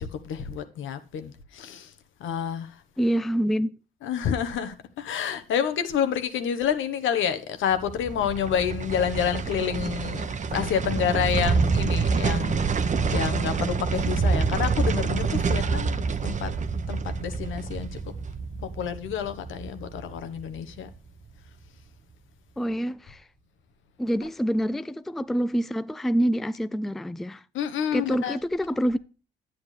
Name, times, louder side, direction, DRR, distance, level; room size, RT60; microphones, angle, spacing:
voice 1, 0.0-1.9 2.2-2.8 4.0-16.5 16.9-18.0 18.8-20.9 27.5-28.4, left 8 dB, 80° left, 1.2 m, -29 dB
voice 2, 3.0-3.8 22.6-23.3 24.0-27.4 27.9-29.0, equal, ahead, 0.4 m, -26 dB
sound 1, 7.7-20.9 21.2-21.3, right 5 dB, 35° right, 0.9 m, -27 dB
9.5 x 8.8 x 3.3 m
cardioid pair, 90°, 20 cm